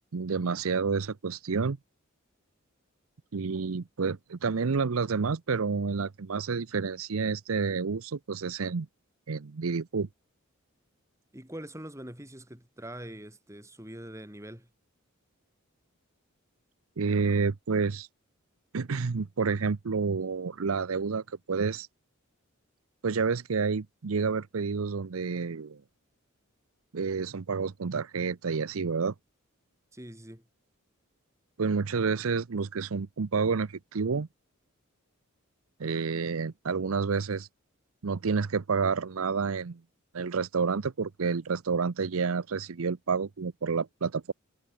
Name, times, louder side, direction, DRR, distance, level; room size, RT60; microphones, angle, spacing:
voice 1, 0.1-1.8 3.3-8.9 9.3-10.1 17.0-18.1 18.7-21.9 23.0-25.8 26.9-29.1 31.6-34.3 35.8-37.5 38.0-39.8 40.1-44.3, right 5 dB, 80° right, 0.7 m, -29 dB
voice 2, 11.3-14.7 29.9-30.5, right 1 dB, 15° right, 5.8 m, -43 dB
head